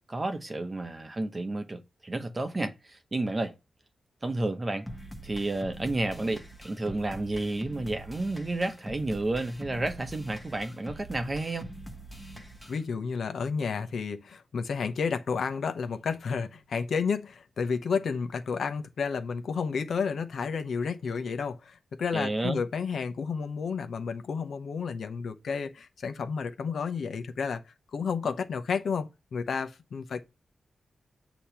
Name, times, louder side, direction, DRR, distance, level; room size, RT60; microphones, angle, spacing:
voice 1, 0.1-3.5 4.2-4.9 5.2-11.7 22.1-22.6, right 2 dB, 20° right, 0.9 m, -31 dB
sound 1, 4.9-12.9, right 1 dB, 5° left, 1.1 m, -44 dB
voice 2, 12.7-27.6 27.9-30.2, left 5 dB, 75° left, 0.9 m, -31 dB
8.6 x 3.0 x 5.7 m
wide cardioid pair, 160°, 0 cm